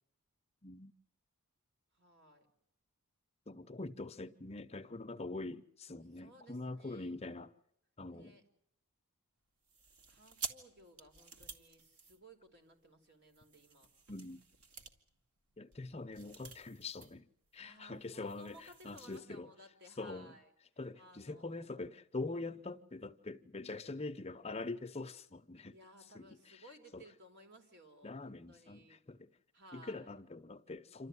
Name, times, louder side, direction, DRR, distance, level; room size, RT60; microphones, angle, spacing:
voice 1, 1.9-2.5 6.1-7.4 8.1-8.5 10.1-13.9 17.6-20.5 20.9-21.6 25.7-29.0 29.5-30.1, right 1 dB, 50° right, 4.5 m, -59 dB
voice 2, 3.5-7.5 8.0-8.4 14.1-14.4 15.6-19.5 20.0-20.3 20.8-25.8 26.1-26.6 26.9-27.0 28.0-29.3 29.7-31.1, left 3 dB, 30° left, 0.8 m, -44 dB
sound 1, 9.6-12.7 13.3-17.2 17.5-17.6 17.9-19.2, right 5 dB, 85° right, 2.2 m, -50 dB
27.5 x 13.5 x 9.6 m
head